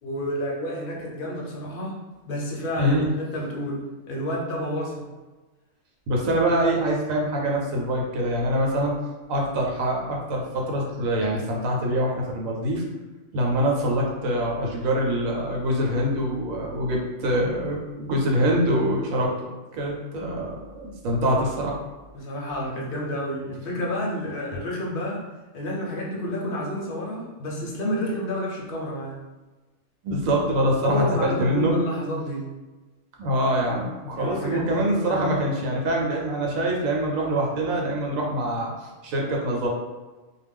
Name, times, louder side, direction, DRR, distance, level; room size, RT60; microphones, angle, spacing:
voice 1, 0.0-5.1 22.1-25.3 25.5-29.2 30.8-32.5 34.1-35.4, equal, 55° left, -3 dB, 0.7 m, -30 dB
voice 2, 2.8-3.1 6.1-8.9 9.3-12.8 13.3-19.5 19.7-21.8 30.0-31.7 33.2-39.7, right 1 dB, 90° right, -1 dB, 1.0 m, -24 dB
2.4 x 2.1 x 3.4 m, 1.2 s
omnidirectional pair, 1.4 m